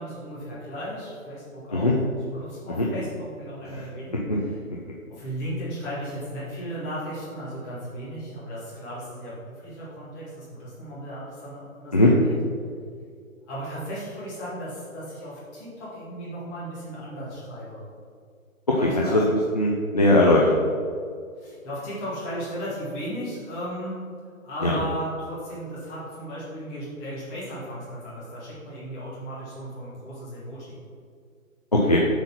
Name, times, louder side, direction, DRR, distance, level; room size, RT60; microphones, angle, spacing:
voice 1, 0.0-1.9 2.3-4.6 5.1-12.4 13.5-17.9 18.8-19.2 21.4-24.0 24.4-30.8, equal, 15° left, -9 dB, 2.0 m, -35 dB
voice 2, 19.6-20.6 24.6-24.8 31.7-32.0, left 2 dB, 30° left, -3 dB, 0.5 m, -19 dB
7.9 x 4.3 x 5.7 m, 2.2 s
hypercardioid pair, 165°, 42 cm